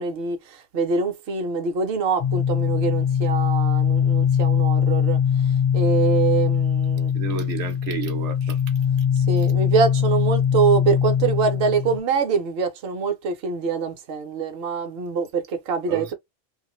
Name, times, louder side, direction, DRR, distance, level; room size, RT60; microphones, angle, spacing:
voice 1, 0.0-7.1 8.4-8.5 9.1-16.1, right 5 dB, 65° right, 0.9 m, -24 dB
sound 1, 2.2-12.0, left 8 dB, 55° left, 0.4 m, -21 dB
voice 2, 7.1-8.6 15.9-16.1, right 7 dB, 80° right, 1.0 m, -31 dB
2.5 x 2.5 x 3.0 m
omnidirectional pair, 1.2 m